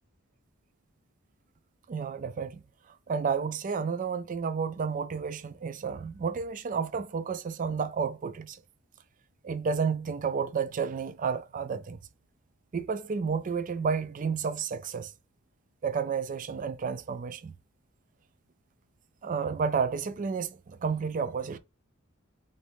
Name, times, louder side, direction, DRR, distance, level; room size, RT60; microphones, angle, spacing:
voice 1, 1.9-2.6 2.9-8.6 9.4-12.0 12.7-15.1 15.8-17.5 19.2-21.6, right 5 dB, 40° right, 0.4 m, -31 dB
3.9 x 2.6 x 3.3 m
head